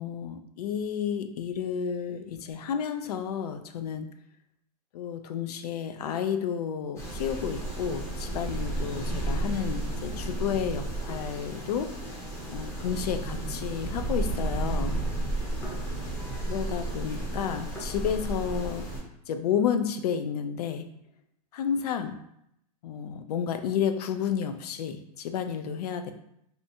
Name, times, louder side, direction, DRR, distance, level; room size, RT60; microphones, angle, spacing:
voice 1, 0.0-4.1 4.9-11.9 12.5-15.0 16.5-18.9 19.3-20.9 21.5-22.2 22.8-26.1, left 8 dB, 70° left, 8 dB, 0.4 m, -31 dB
sound 1, 7.0-19.0, right 2 dB, 15° left, 0.7 m, -32 dB
2.7 x 2.2 x 2.7 m, 0.74 s
hypercardioid pair, 145°, 20 cm